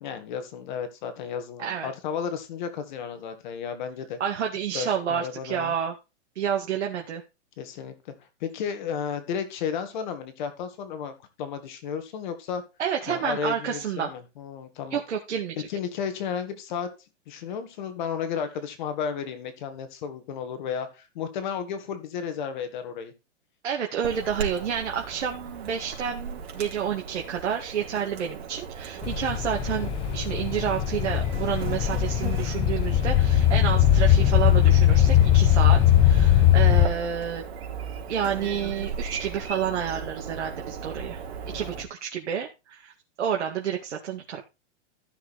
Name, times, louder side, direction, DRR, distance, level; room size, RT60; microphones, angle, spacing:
voice 1, 0.0-4.2 4.7-5.7 7.6-7.9 8.4-12.6 13.1-15.0 15.7-16.9 17.3-23.1 41.5-41.8, left 7 dB, 40° left, 8 dB, 2.0 m, -33 dB
voice 2, 1.6-1.9 4.2-5.9 6.4-7.2 12.8-14.1 14.9-15.6 23.6-37.4 38.1-41.2 41.5-42.9 43.2-44.4, right 8 dB, 75° right, 1 dB, 2.4 m, -29 dB
Chirp tweet / Buzz, 24.0-41.8, right 6 dB, 60° right, 3.8 m, -37 dB
sound 1, 29.0-36.9, left 11 dB, 15° left, 0.8 m, -20 dB
14.0 x 6.6 x 4.3 m, 0.27 s
hypercardioid pair, 165°, 36 cm